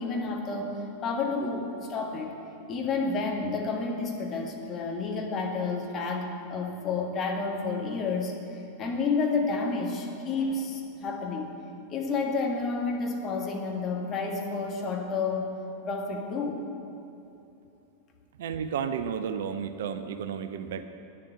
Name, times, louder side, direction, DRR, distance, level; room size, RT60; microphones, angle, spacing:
voice 1, 0.0-2.3 2.7-8.3 8.8-11.5 11.9-15.5 15.8-16.6, left 4 dB, 30° left, 1 dB, 1.6 m, -30 dB
voice 2, 18.4-20.8, right 7 dB, 60° right, 10 dB, 0.5 m, -32 dB
9.5 x 7.7 x 7.4 m, 2.8 s
figure-of-eight pair, 90°, 0 cm